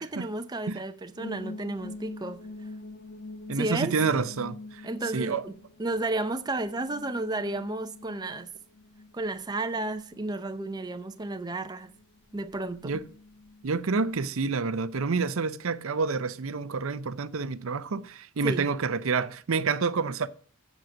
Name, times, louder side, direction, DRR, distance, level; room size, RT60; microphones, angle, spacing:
voice 1, 0.0-2.4 3.5-3.9 4.8-5.5 5.8-8.5 9.1-11.9 12.3-13.0 18.4-18.7, right 2 dB, 20° right, 0.5 m, -32 dB
sound 1, 1.2-14.2, left 2 dB, 50° left, 1.0 m, -46 dB
voice 2, 3.5-5.4 12.8-13.0 13.6-20.3, right 4 dB, 65° right, 0.6 m, -28 dB
7.7 x 7.3 x 6.2 m
head